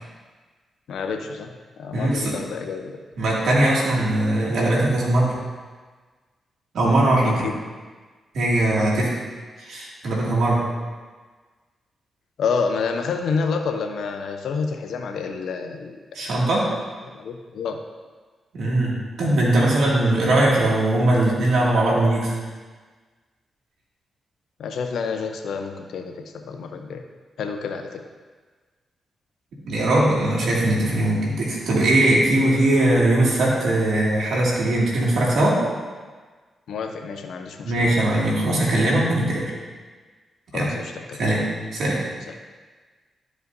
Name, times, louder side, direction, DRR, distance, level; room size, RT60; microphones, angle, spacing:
voice 1, 0.9-1.5 1.8-3.0 7.2-7.5 12.4-16.2 17.1-17.8 24.6-27.0 27.4-28.0 36.7-37.9 40.5-41.2 42.3-42.4, left 5 dB, 80° left, 5 dB, 0.7 m, -29 dB
voice 2, 1.9-2.3 3.2-5.4 6.7-7.5 8.3-9.1 9.6-10.6 16.1-16.7 18.5-22.3 29.7-35.6 37.6-39.5 40.5-40.7 41.2-41.4 41.7-42.0, right 1 dB, 80° right, -5 dB, 2.2 m, -20 dB
12.5 x 5.0 x 2.7 m, 1.4 s
supercardioid pair, 55°, 0 cm